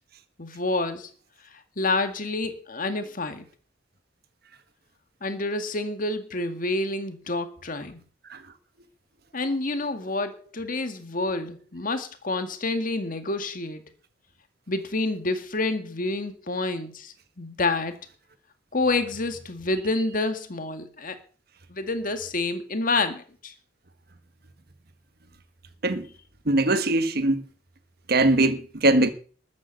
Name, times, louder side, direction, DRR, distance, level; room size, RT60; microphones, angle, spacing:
voice 1, 0.4-1.1 1.8-3.5 5.2-8.0 9.3-13.8 14.7-18.0 18.7-21.2 21.7-23.5, left 2 dB, 45° left, 1.9 m, -28 dB
voice 2, 26.5-27.4 28.1-29.1, right 2 dB, 55° right, 1.5 m, -21 dB
13.5 x 8.3 x 8.2 m
head